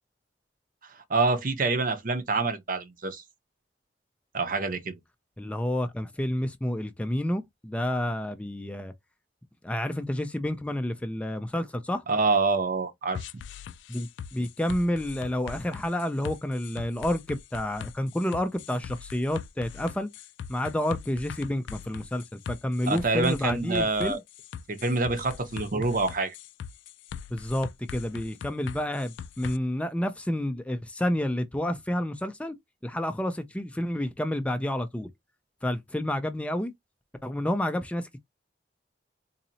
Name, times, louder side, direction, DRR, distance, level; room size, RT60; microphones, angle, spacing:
voice 1, 0.8-3.2 4.3-4.9 12.1-13.2 22.9-24.2 24.7-26.3, right 3 dB, 50° right, 0.7 m, -26 dB
voice 2, 5.4-8.9 9.6-12.0 13.9-20.1 20.5-24.2 27.3-32.6 32.8-35.1 35.6-36.7 37.2-38.2, left 1 dB, 5° left, 0.4 m, -29 dB
sound 1, 13.1-29.6, left 7 dB, 85° left, 0.3 m, -41 dB
4.0 x 2.7 x 2.7 m
head